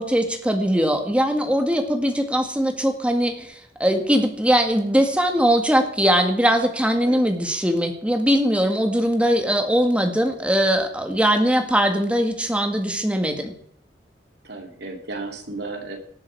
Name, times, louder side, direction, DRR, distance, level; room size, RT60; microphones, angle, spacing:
voice 1, 0.0-3.5 3.8-13.5, equal, 5° right, 4 dB, 1.9 m, -21 dB
voice 2, 14.4-16.0, right 3 dB, 65° right, 3 dB, 3.0 m, -34 dB
18.5 x 11.0 x 4.7 m, 0.65 s
head